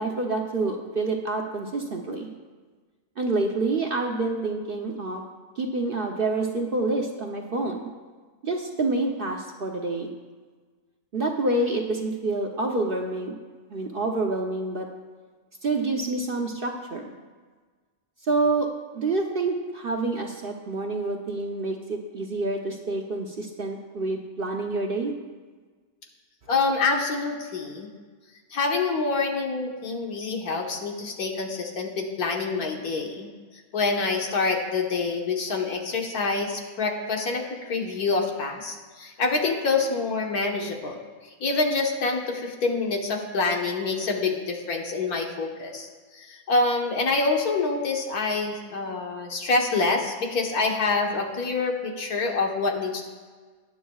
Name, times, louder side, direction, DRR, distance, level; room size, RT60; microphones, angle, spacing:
voice 1, 0.0-2.3 3.2-5.2 5.6-7.8 8.4-10.1 11.1-13.4 13.7-14.9 15.6-17.1 18.2-25.1, right 2 dB, 45° right, 2 dB, 0.8 m, -27 dB
voice 2, 26.5-27.9 28.5-33.3 33.7-41.0 41.4-53.1, left 3 dB, 75° left, 2 dB, 1.8 m, -26 dB
19.0 x 9.1 x 2.3 m, 1.4 s
omnidirectional pair, 1.6 m